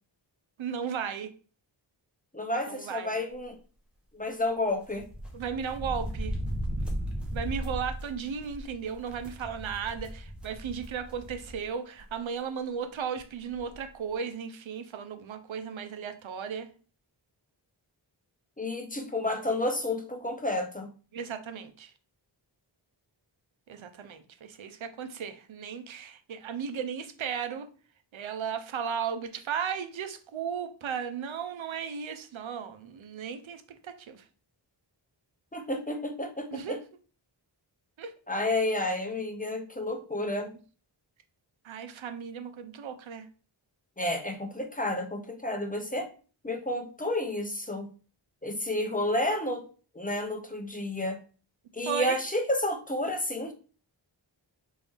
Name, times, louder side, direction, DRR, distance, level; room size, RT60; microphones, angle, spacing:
voice 1, 0.6-1.3 2.7-3.1 5.3-6.3 7.3-16.7 21.1-21.9 23.7-27.7 28.1-34.2 36.5-36.8 38.0-38.1 41.6-43.3 51.9-52.2, right 7 dB, 80° right, 0.6 m, -35 dB
voice 2, 2.3-3.6 4.1-5.1 18.6-20.9 35.5-36.8 38.3-40.5 44.0-46.1 46.4-47.9 48.4-49.7 49.9-51.2 51.7-53.5, left 1 dB, 20° left, 0.5 m, -30 dB
sound 1, 4.9-11.6 12.0-12.1 13.2-13.3 13.5-13.8, equal, ahead, 0.8 m, -36 dB
3.5 x 2.6 x 3.4 m
wide cardioid pair, 80°, 46 cm